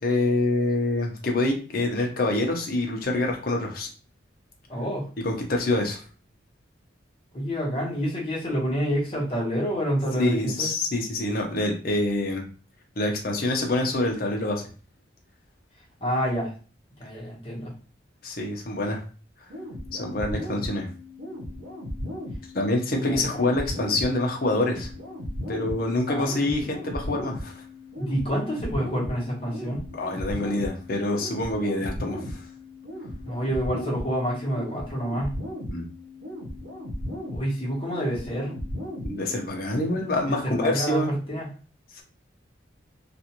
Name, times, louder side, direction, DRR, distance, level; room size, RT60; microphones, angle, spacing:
voice 1, 0.0-3.9 5.2-6.0 10.2-12.5 13.0-14.7 18.2-19.0 19.9-20.9 22.5-24.9 25.5-27.6 29.9-32.4 35.7-35.9 39.0-41.1 42.0-42.1, left 2 dB, 50° left, 1 dB, 0.7 m, -26 dB
voice 2, 4.7-5.1 7.3-10.7 16.0-16.5 17.0-17.7 23.0-23.5 26.1-26.6 27.9-29.8 33.2-35.4 37.3-38.5 39.9-41.5, equal, 30° left, -5 dB, 1.1 m, -28 dB
sound 1, 19.5-39.5, left 1 dB, 75° right, 0.9 m, -36 dB
2.5 x 2.5 x 2.9 m, 0.38 s
head